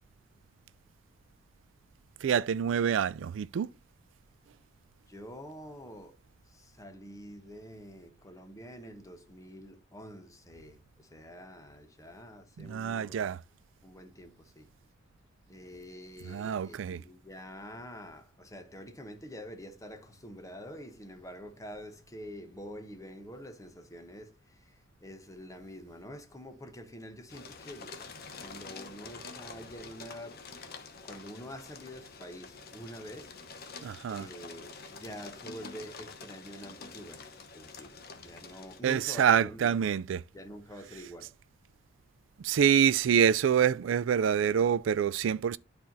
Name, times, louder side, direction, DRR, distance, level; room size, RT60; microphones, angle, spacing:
voice 1, 2.2-3.7 12.6-13.4 16.3-17.0 33.8-34.3 38.8-40.2 42.4-45.6, right 8 dB, 70° right, 0.3 m, -26 dB
voice 2, 5.1-6.1 6.5-13.3 13.8-14.7 15.5-28.0 28.3-30.5 31.0-33.8 34.1-39.9 40.3-41.3, equal, 15° left, 0.9 m, -47 dB
sound 1, 27.3-38.8, left 4 dB, 55° left, 1.0 m, -47 dB
12.0 x 4.4 x 2.7 m
head